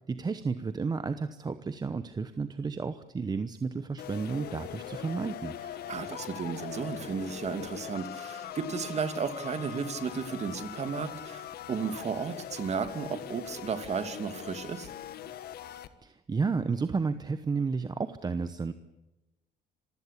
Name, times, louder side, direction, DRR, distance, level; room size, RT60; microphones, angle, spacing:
voice 1, 0.1-5.5 16.0-18.7, right 4 dB, 25° right, 11 dB, 1.0 m, -32 dB
sound 1, 4.0-15.9, left 11 dB, 65° left, 1.4 m, -42 dB
voice 2, 5.9-14.9, right 6 dB, 40° right, 8 dB, 2.7 m, -34 dB
26.5 x 16.0 x 8.4 m, 1.0 s
cardioid pair, 110°, 17 cm